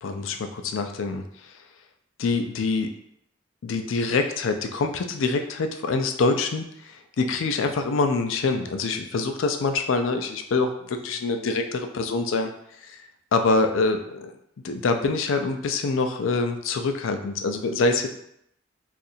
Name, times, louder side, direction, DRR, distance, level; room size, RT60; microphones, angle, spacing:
voice 1, 0.0-1.2 2.2-2.9 3.6-6.6 7.2-11.0 11.2-11.4 11.7-12.5 13.3-14.3 14.6-18.1, left 3 dB, 90° left, 6 dB, 0.4 m, -25 dB
2.7 x 2.5 x 4.1 m, 0.75 s
head